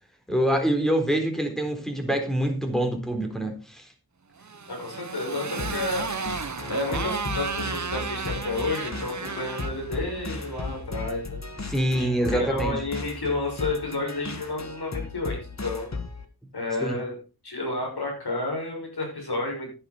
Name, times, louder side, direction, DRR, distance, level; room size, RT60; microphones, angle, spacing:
voice 1, 0.3-3.9 11.7-12.8 16.8-17.0, right 1 dB, ahead, 4 dB, 3.9 m, -25 dB
Motorcycle, 4.4-10.8, right 5 dB, 50° right, 1.0 m, -34 dB
voice 2, 4.7-11.4 12.0-16.0 16.5-17.1 17.4-19.7, left 2 dB, 85° left, 0 dB, 6.5 m, -31 dB
sound 1, 5.6-16.2, left 3 dB, 45° left, 1.9 m, -36 dB
11.0 x 10.0 x 4.4 m, 0.33 s
wide cardioid pair, 75°, 38 cm